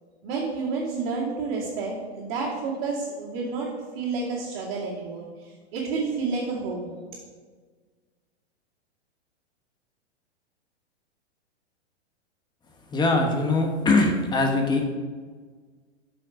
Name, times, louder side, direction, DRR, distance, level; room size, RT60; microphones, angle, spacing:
voice 1, 0.2-3.7 3.9-7.0, right 4 dB, 45° right, -8 dB, 2.6 m, -30 dB
voice 2, 12.9-14.8, left 2 dB, 10° left, 3 dB, 1.1 m, -22 dB
7.9 x 6.5 x 5.1 m, 1.5 s
hypercardioid pair, 135°, 34 cm